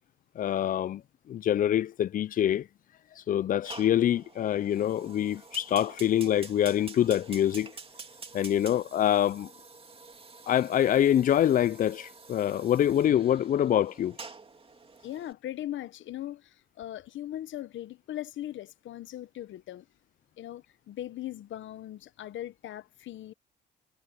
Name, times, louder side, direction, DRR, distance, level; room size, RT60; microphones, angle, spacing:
voice 1, 0.4-1.0 1.3-2.7 3.3-7.7 8.3-9.5 10.5-14.2, left 11 dB, 45° left, 0.4 m, -25 dB
Fire, 3.6-15.3, right 4 dB, 30° right, 2.8 m, -48 dB
voice 2, 15.0-19.9 20.4-23.3, left 13 dB, 75° left, 1.0 m, -39 dB
cardioid pair, 90°, 20 cm